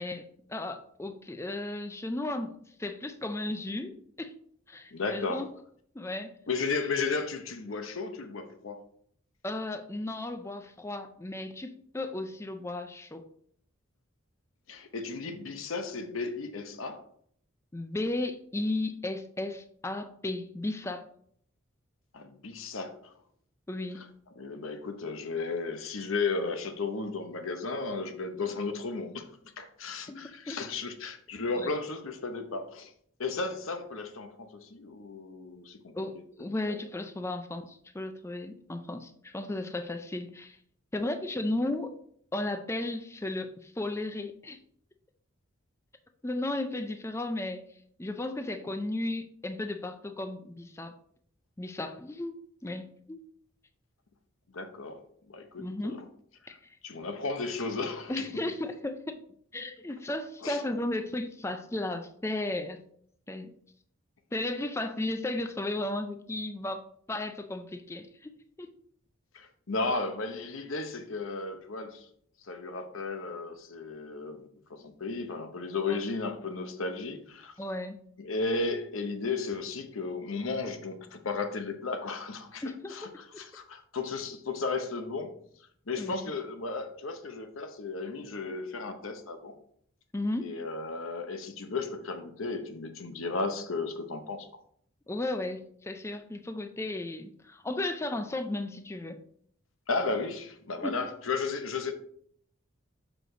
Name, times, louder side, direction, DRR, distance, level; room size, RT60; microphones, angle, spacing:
voice 1, 0.0-4.3 4.7-5.5 5.9-6.3 9.4-13.3 17.7-21.0 23.7-24.1 30.1-30.6 31.5-31.7 35.9-40.6 40.9-42.0 42.3-44.6 46.2-47.6 48.0-50.9 51.6-52.3 52.6-53.2 55.6-56.0 56.5-56.6 58.1-59.2 59.5-62.8 63.3-63.5 64.3-68.7 75.9-76.0 77.6-78.0 82.6-83.4 86.0-86.3 90.1-90.6 95.1-99.2 100.8-101.1, left 2 dB, 15° left, 8 dB, 0.4 m, -35 dB
voice 2, 4.9-5.5 6.5-8.8 14.7-17.0 22.1-23.0 23.9-24.1 24.4-29.2 29.6-32.9 33.2-36.2 36.7-36.8 54.5-55.0 55.3-56.0 56.8-58.1 60.4-60.6 69.3-72.1 72.5-77.5 78.2-82.6 82.9-83.1 83.4-85.3 85.9-89.5 90.4-94.5 99.9-101.9, left 3 dB, 75° left, 7 dB, 0.9 m, -34 dB
6.4 x 5.1 x 3.8 m, 0.64 s
head